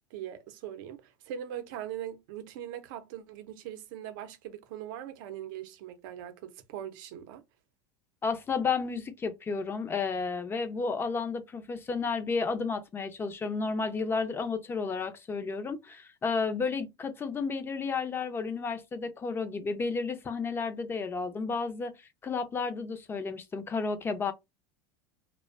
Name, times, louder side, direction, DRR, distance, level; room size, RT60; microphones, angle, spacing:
voice 1, 0.1-7.4, right 10 dB, 70° right, 0.6 m, -41 dB
voice 2, 8.2-21.9 22.2-24.3, left 4 dB, 20° left, 0.4 m, -32 dB
2.4 x 2.1 x 2.4 m
supercardioid pair, 115°, 12 cm